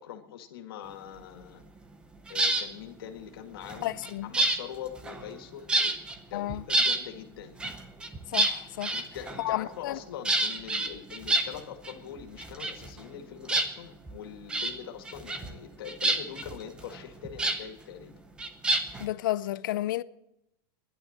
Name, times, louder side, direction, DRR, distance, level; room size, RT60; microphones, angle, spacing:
voice 1, 0.0-1.6 2.3-6.0 6.3-7.6 8.9-18.2, left 9 dB, 90° left, 2.0 m, -43 dB
sound 1, 2.3-2.7 3.6-5.4 5.7-6.2 6.5-7.0 7.6-9.6 10.3-11.9 12.2-13.2 13.5-14.1 14.5-14.8 15.1-15.6 15.9-17.6 18.4-19.1, right 2 dB, 10° right, 0.7 m, -28 dB
voice 2, 3.8-4.3 6.3-6.7 8.3-9.0 9.4-10.0 19.0-20.0, left 15 dB, 65° left, 0.6 m, -32 dB
14.0 x 11.0 x 7.3 m
supercardioid pair, 180°, 12 cm